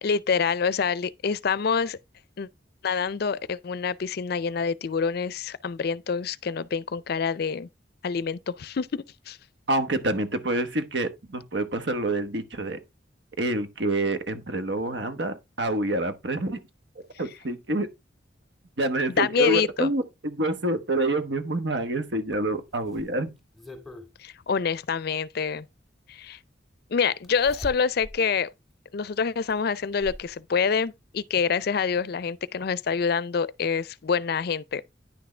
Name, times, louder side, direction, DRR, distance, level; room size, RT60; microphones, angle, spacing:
voice 1, 0.0-2.0 2.4-2.5 2.8-7.7 8.0-9.4 19.2-19.9 24.2-25.7 26.1-26.4 26.9-28.5 28.9-34.8, left 6 dB, 55° left, 0.4 m, -26 dB
voice 2, 9.7-12.8 13.4-16.6 17.2-17.9 18.8-23.3, right 1 dB, 70° right, 1.2 m, -27 dB
Zipper (clothing), 22.3-24.1 25.5-25.6 27.2-28.2 28.7-28.8 29.5-30.3 31.5-31.6 31.9-32.0, left 1 dB, ahead, 2.1 m, -42 dB
10.0 x 6.1 x 3.3 m
head